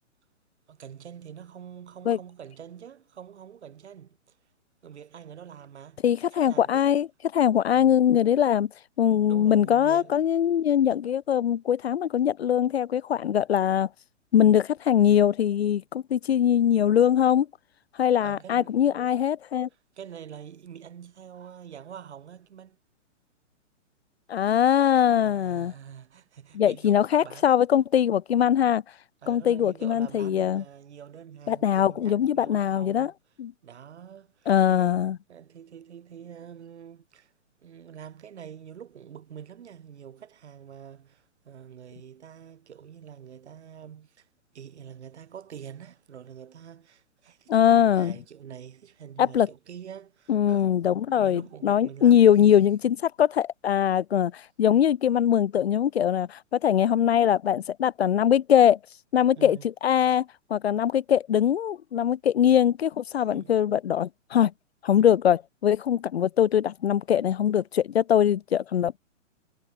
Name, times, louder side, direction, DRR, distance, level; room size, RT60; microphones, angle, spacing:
voice 1, 0.7-4.4 4.8-6.0 6.3-7.0 7.7-8.0 9.2-10.4 18.2-19.1 19.7-22.8 25.1-27.5 29.2-33.1 33.6-37.3 37.6-44.3 44.5-50.7 51.1-52.6 59.4-59.7 63.3-63.6, right 8 dB, 60° right, 6.3 m, -45 dB
voice 2, 6.0-7.1 7.3-8.7 9.0-13.9 14.3-17.5 18.0-19.7 24.3-25.7 26.5-28.8 29.3-30.6 31.5-33.1 33.4-33.5 34.5-35.2 47.5-48.1 49.2-49.5 50.3-58.8 59.1-64.5 64.8-69.0, left 9 dB, 55° left, 1.5 m, -22 dB
hypercardioid pair, 170°, 38 cm